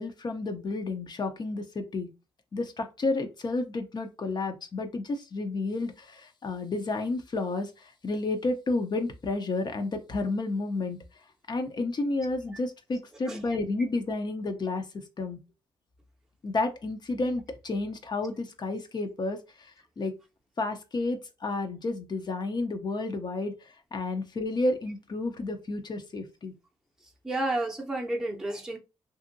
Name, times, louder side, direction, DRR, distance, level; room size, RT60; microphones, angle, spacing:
voice 1, 0.0-2.1 2.5-11.0 11.5-14.8 15.2-15.4 16.4-20.1 20.6-26.5, left 2 dB, 45° left, 0.6 m, -31 dB
voice 2, 27.2-28.8, right 2 dB, 5° right, 0.7 m, -31 dB
2.6 x 2.6 x 2.6 m
cardioid pair, 65°, 11 cm